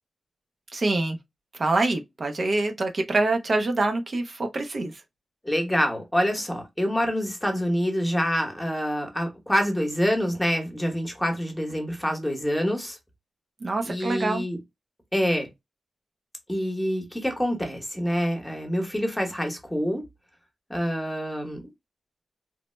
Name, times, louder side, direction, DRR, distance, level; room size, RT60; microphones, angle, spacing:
voice 1, 0.7-1.2 1.5-5.0 13.6-14.4, right 2 dB, 45° right, 0.5 m, -25 dB
voice 2, 5.4-13.0 13.9-14.6 15.1-15.5 16.5-20.0 20.7-21.6, equal, 10° left, 0.9 m, -26 dB
3.0 x 2.0 x 3.0 m
wide cardioid pair, 105°, 0 cm